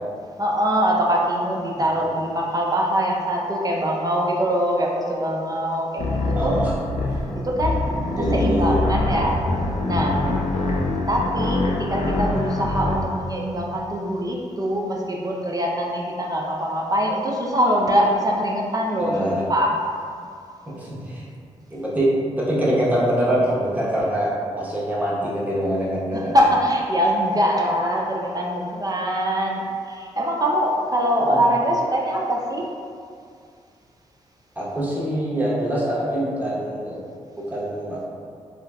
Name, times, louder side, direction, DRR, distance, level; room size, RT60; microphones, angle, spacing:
voice 1, 0.4-6.6 7.4-7.8 8.2-9.4 9.9-10.2 11.1-19.8 26.1-32.7, equal, 30° right, -2 dB, 0.4 m, -23 dB
sound 1, 6.0-13.0, left 2 dB, 60° left, 0.5 m, -24 dB
voice 2, 6.3-6.7 7.0-7.2 8.1-8.8 19.0-19.4 20.7-21.2 21.7-22.1 22.4-24.3 24.6-26.4 31.2-31.4 34.6-37.0 37.4-38.0, right 1 dB, 15° right, -7 dB, 1.0 m, -24 dB
3.7 x 2.2 x 2.3 m, 2.3 s
supercardioid pair, 45°, 13 cm